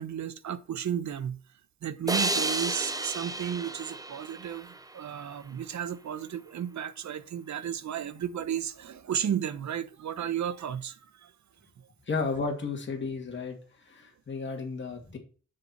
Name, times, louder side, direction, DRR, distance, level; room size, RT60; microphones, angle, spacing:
voice 1, 0.0-1.4 1.8-11.3, right 9 dB, 70° right, 0.9 m, -33 dB
sound 1, 2.1-5.4, right 2 dB, 10° right, 0.7 m, -32 dB
voice 2, 12.1-13.6 13.9-15.2, left 4 dB, 40° left, 2.3 m, -33 dB
7.1 x 6.9 x 4.4 m
wide cardioid pair, 135°, 30 cm